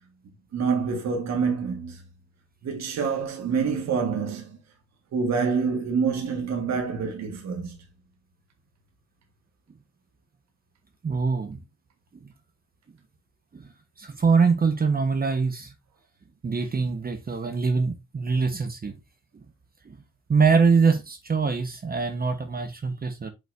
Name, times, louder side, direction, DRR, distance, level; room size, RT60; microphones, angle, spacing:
voice 1, 0.5-2.0 2.6-4.6 5.1-7.8, right 5 dB, 60° right, 1.8 m, -26 dB
voice 2, 11.0-11.6 13.5-13.6 14.0-15.7 16.4-18.9 19.9-20.0 20.3-23.3, right 5 dB, 30° right, 1.1 m, -23 dB
7.2 x 5.7 x 2.7 m
cardioid pair, 90°, 30 cm